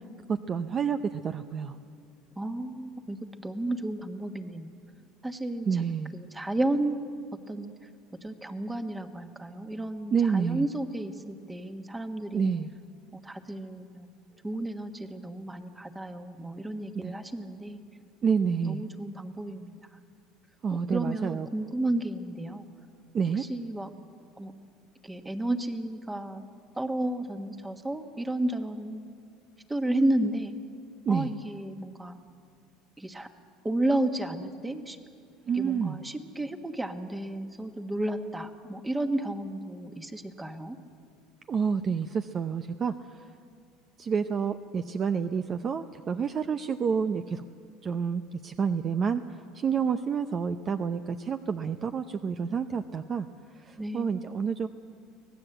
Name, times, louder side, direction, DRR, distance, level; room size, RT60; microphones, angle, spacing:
voice 1, 0.3-1.8 5.7-6.1 10.1-10.7 12.3-12.7 16.9-17.1 18.2-18.8 20.6-21.5 23.1-23.4 31.1-31.3 35.5-36.0 41.5-43.2 44.0-47.4 47.8-49.2 49.5-53.3 53.6-54.7, right 6 dB, 30° right, 9 dB, 0.7 m, -29 dB
voice 2, 2.4-4.7 5.2-5.8 6.1-7.2 7.5-7.7 8.2-12.5 13.1-14.1 14.4-17.8 18.7-19.7 20.9-22.6 23.4-23.9 24.4-24.5 25.0-26.5 26.7-29.0 29.7-30.5 31.1-32.2 33.0-33.3 33.6-35.0 35.5-40.8 53.8-54.4, right 1 dB, 10° right, 7 dB, 1.4 m, -32 dB
25.0 x 18.0 x 7.9 m, 2.2 s
supercardioid pair, 125°, 0 cm